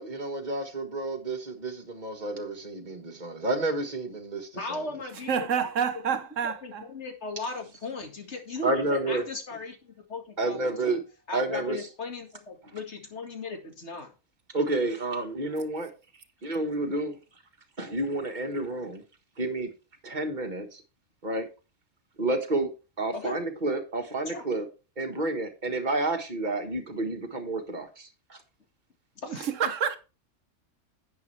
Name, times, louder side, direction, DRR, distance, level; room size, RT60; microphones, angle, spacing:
voice 1, 0.0-4.8 8.6-9.2 10.4-11.0 11.3-11.8 14.5-15.9 16.4-17.1 17.8-19.0 19.4-19.7 20.0-20.8 21.2-21.5 22.2-22.7 23.0-24.7 25.0-28.4, right 2 dB, 35° right, 1.6 m, -30 dB
voice 2, 4.6-5.7 6.1-6.2 6.4-11.0 11.3-14.1 23.1-23.4 24.3-24.4 29.2-29.5, left 3 dB, 60° left, 2.3 m, -37 dB
voice 3, 5.3-6.8 29.3-30.0, right 7 dB, 75° right, 1.4 m, -28 dB
10.5 x 8.6 x 3.3 m
omnidirectional pair, 1.3 m